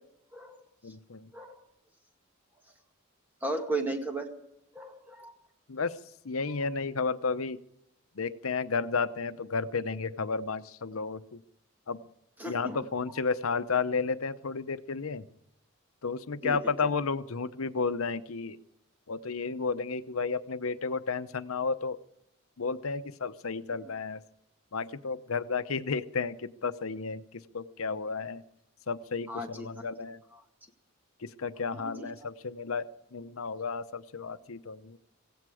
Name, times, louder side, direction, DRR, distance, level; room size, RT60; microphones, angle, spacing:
voice 1, 0.8-1.3 5.7-6.0 6.2-7.6 8.2-11.4 11.9-12.0 12.5-15.3 16.0-18.6 19.1-22.0 22.6-24.2 24.7-28.4 28.9-30.2 31.2-35.0, left 4 dB, 80° left, 12 dB, 0.8 m, -32 dB
voice 2, 3.4-4.3 4.7-5.3 12.4-12.8 16.4-16.6 23.8-23.9 29.3-29.7 30.3-30.4 31.7-32.1, right 2 dB, 10° right, 3 dB, 2.1 m, -35 dB
17.5 x 16.5 x 4.9 m, 0.80 s
head